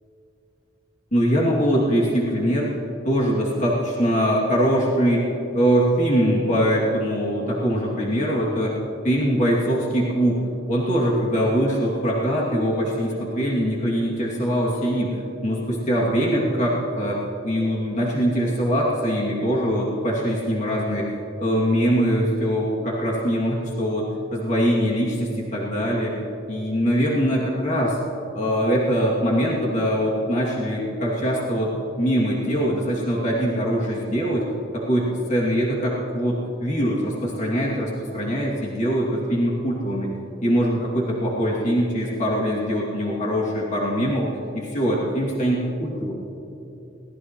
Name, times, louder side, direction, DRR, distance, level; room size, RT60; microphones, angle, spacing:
voice 1, 1.1-2.8 3.0-5.3 5.5-8.7 9.0-10.4 10.7-15.2 15.4-21.1 21.4-24.1 24.3-26.1 26.5-28.0 28.3-34.5 34.7-40.1 40.4-44.3 44.5-46.2, equal, 40° left, -4 dB, 2.6 m, -22 dB
24.0 x 18.5 x 3.1 m, 2.9 s
head